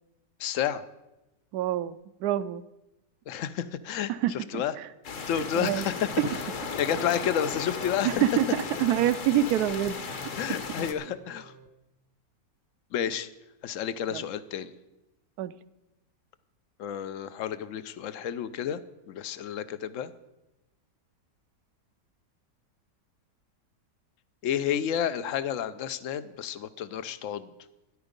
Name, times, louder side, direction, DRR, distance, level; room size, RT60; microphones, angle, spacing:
voice 1, 0.4-0.8 3.3-4.7 5.3-6.1 6.8-8.2 8.7-8.8 10.4-11.5 12.9-13.3 13.6-14.7 16.8-18.8 19.1-20.1 24.4-27.5, left 9 dB, 65° left, 14 dB, 0.8 m, -30 dB
voice 2, 1.5-2.6 4.1-4.9 5.6-5.9 6.2-6.3 8.0-10.3 14.1-14.2 15.4-15.6, right 11 dB, 70° right, 15 dB, 1.0 m, -27 dB
sound 1, 5.0-10.9, left 5 dB, 50° left, 1.3 m, -36 dB
sound 2, 5.3-11.7, right 4 dB, 55° right, 0.5 m, -53 dB
13.0 x 11.0 x 5.2 m, 0.97 s
omnidirectional pair, 1.9 m